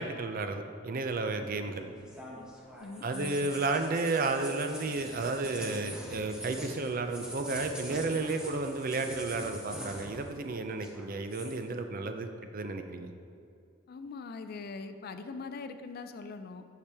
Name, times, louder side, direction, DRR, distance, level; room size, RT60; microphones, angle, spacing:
voice 1, 0.0-1.8 3.0-13.1, right 3 dB, 45° right, 7 dB, 0.5 m, -32 dB
sound 1, 1.4-10.5 10.7-11.6, equal, 5° right, 0.9 m, -44 dB
voice 2, 2.8-3.6 13.9-16.6, left 4 dB, 50° left, 9 dB, 0.4 m, -42 dB
8.3 x 6.7 x 3.4 m, 2.5 s
head